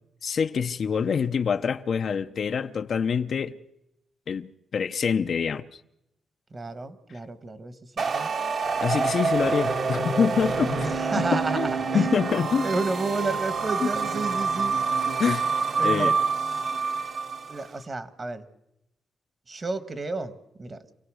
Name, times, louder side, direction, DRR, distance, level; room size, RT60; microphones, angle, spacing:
voice 1, 0.2-3.6 4.3-5.8 8.8-12.7 13.8-13.9 15.2-15.5 15.8-16.2, left 6 dB, 55° left, 0.8 m, -26 dB
voice 2, 6.5-8.3 10.8-15.2 15.8-16.2 17.5-18.4 19.5-20.9, right 3 dB, 30° right, 1.5 m, -32 dB
sound 1, 8.0-17.6, right 4 dB, 55° right, 1.8 m, -27 dB
27.0 x 17.0 x 6.4 m
cardioid pair, 110°, 0 cm